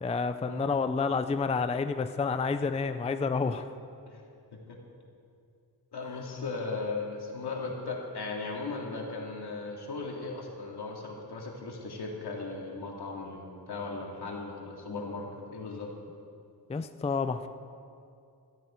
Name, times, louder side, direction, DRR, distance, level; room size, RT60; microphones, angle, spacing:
voice 1, 0.0-3.7 16.7-17.5, left 4 dB, 15° left, 10 dB, 0.4 m, -29 dB
voice 2, 5.9-15.9, left 3 dB, 80° left, -1 dB, 2.5 m, -37 dB
17.0 x 13.5 x 4.5 m, 2.5 s
wide cardioid pair, 155°, 39 cm